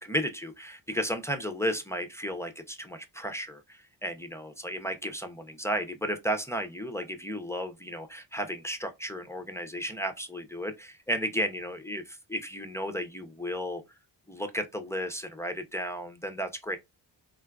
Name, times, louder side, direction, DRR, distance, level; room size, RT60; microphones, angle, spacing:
voice 1, 0.0-13.8 14.3-16.8, equal, 5° left, 0.5 m, -34 dB
3.7 x 2.3 x 2.2 m
cardioid pair, 95°, 43 cm